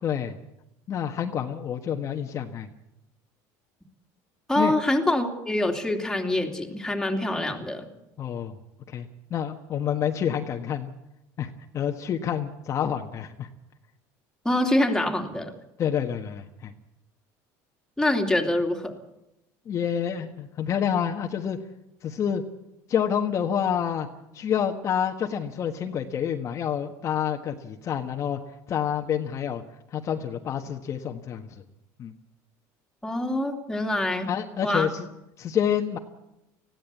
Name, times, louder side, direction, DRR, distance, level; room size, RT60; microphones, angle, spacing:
voice 1, 0.0-0.3 0.9-2.7 4.6-4.7 8.2-8.5 8.9-10.9 11.4-13.5 15.8-16.7 19.7-21.6 22.0-22.4 22.9-24.1 24.3-28.4 28.7-29.6 29.9-31.4 32.0-32.1 34.3-35.1 35.4-36.0, left 8 dB, 40° left, 3 dB, 1.4 m, -28 dB
voice 2, 4.5-7.9 14.4-15.5 18.0-19.0 33.0-34.3 34.6-34.9, left 1 dB, 5° left, 2 dB, 2.8 m, -25 dB
20.0 x 15.5 x 8.4 m, 0.87 s
cardioid pair, 130°, 8 cm